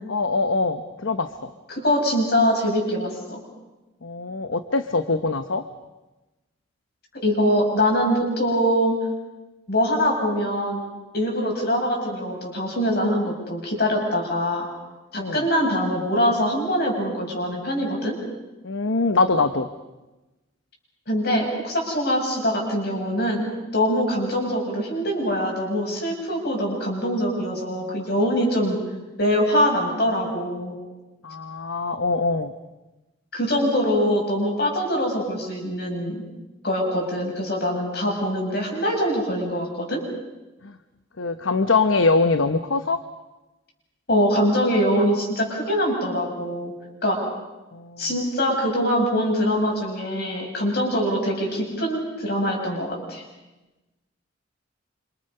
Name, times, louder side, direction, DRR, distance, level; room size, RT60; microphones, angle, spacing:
voice 1, 0.1-1.5 4.0-5.6 15.1-15.5 18.6-19.7 31.2-32.5 40.6-40.7 41.2-43.0 47.7-48.0, left 3 dB, 85° left, 9 dB, 1.0 m, -23 dB
voice 2, 1.7-3.4 7.2-9.0 9.7-10.8 11.1-14.7 15.1-18.2 21.1-28.8 29.2-30.7 33.3-36.2 36.6-40.0 44.1-46.7 47.0-47.2 48.0-53.2, equal, 55° left, 0 dB, 7.3 m, -23 dB
27.5 x 27.5 x 5.6 m, 1.1 s
head